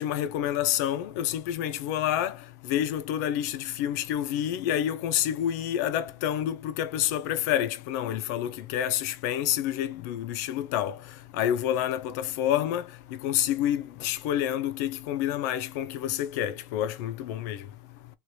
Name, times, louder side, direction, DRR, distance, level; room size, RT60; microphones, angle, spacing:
voice 1, 0.0-2.3 2.7-10.9 11.4-12.8 13.2-17.6, left 11 dB, 55° left, 0.6 m, -28 dB
3.3 x 2.9 x 2.3 m
supercardioid pair, 130°, 10 cm